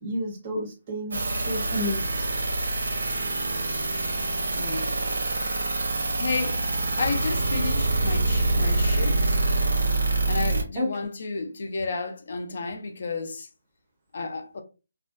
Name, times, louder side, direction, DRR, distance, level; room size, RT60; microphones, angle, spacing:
voice 1, 0.0-2.0 10.8-10.9, left 1 dB, 25° right, 0.6 m, -30 dB
sound 1, 1.1-10.6, right 2 dB, 75° right, 0.8 m, -25 dB
voice 2, 4.5-4.9 6.2-9.4 10.3-13.5 14.1-14.6, left 4 dB, 50° left, 0.5 m, -32 dB
2.5 x 2.2 x 2.4 m
hypercardioid pair, 170°, 0 cm